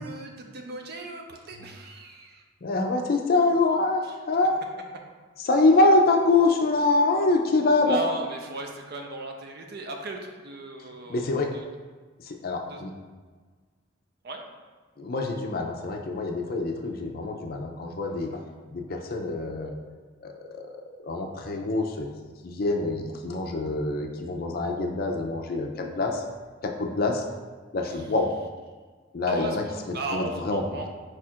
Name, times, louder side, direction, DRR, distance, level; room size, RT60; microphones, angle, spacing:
voice 1, 0.0-2.4 7.9-11.6 12.7-12.8 14.2-14.4 29.2-30.9, right 1 dB, 50° right, 2 dB, 0.5 m, -36 dB
voice 2, 2.6-4.6 5.4-8.0 11.1-11.5 12.2-12.9 15.0-18.4 18.7-19.8 20.2-20.7 21.0-22.1 22.4-26.2 26.6-27.2 27.7-28.3 29.1-30.6, left 2 dB, 50° left, 3 dB, 0.5 m, -25 dB
4.8 x 2.4 x 4.3 m, 1.4 s
head